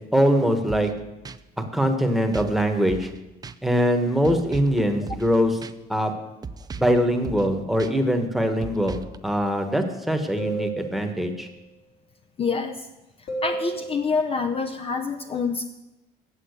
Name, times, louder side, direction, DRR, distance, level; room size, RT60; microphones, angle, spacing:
voice 1, 0.1-0.9 1.7-3.1 3.6-5.6 5.9-6.1 6.7-11.5, equal, ahead, 5 dB, 1.3 m, -22 dB
sound 1, 0.7-1.0 1.3-1.4 2.3-2.6 2.9-3.2 3.4-3.6 4.2-4.8 5.1-5.4 5.6-5.7 6.4-7.0 7.2-7.5 7.8-7.9 8.6-9.2, right 5 dB, 25° right, 0.4 m, -37 dB
sound 2, 10.4-11.5 13.3-14.0, right 2 dB, 65° left, 3.6 m, -32 dB
voice 2, 12.4-12.9 13.4-15.7, left 4 dB, 35° left, 6 dB, 0.7 m, -26 dB
8.5 x 7.2 x 8.2 m, 0.99 s
cardioid pair, 110°, 17 cm